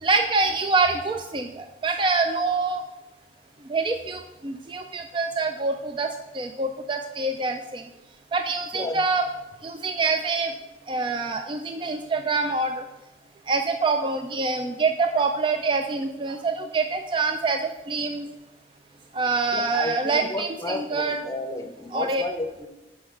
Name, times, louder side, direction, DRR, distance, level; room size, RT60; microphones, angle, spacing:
voice 1, 0.0-2.8 3.7-6.1 6.3-7.8 8.3-9.3 9.6-10.5 10.9-12.8 13.5-18.3 19.1-21.2 21.9-22.2, right 3 dB, 30° right, 6 dB, 0.3 m, -25 dB
voice 2, 19.5-22.7, left 2 dB, 20° left, 4 dB, 0.8 m, -32 dB
5.7 x 5.2 x 6.6 m, 1.0 s
head